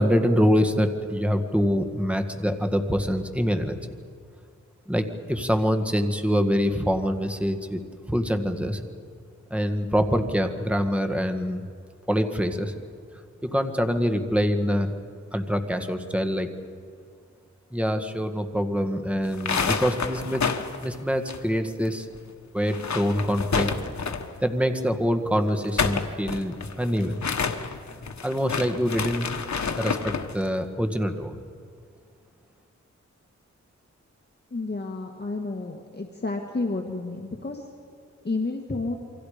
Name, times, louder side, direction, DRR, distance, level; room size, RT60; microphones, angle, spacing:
voice 1, 0.0-3.9 4.9-7.8 8.1-8.8 9.5-11.7 12.1-12.7 13.4-14.9 15.3-16.5 17.7-20.4 20.8-22.1 22.5-23.7 24.4-27.2 28.2-29.3 29.8-31.4, equal, 5° right, 6 dB, 1.8 m, -25 dB
sound 1, 19.3-21.9 22.1-22.2 22.6-24.4 25.5-30.3, left 5 dB, 70° left, 1.3 m, -29 dB
voice 2, 34.5-37.6 38.2-39.0, left 3 dB, 35° left, 2 dB, 1.7 m, -30 dB
28.5 x 24.0 x 5.1 m, 2.3 s
wide cardioid pair, 85°, 29 cm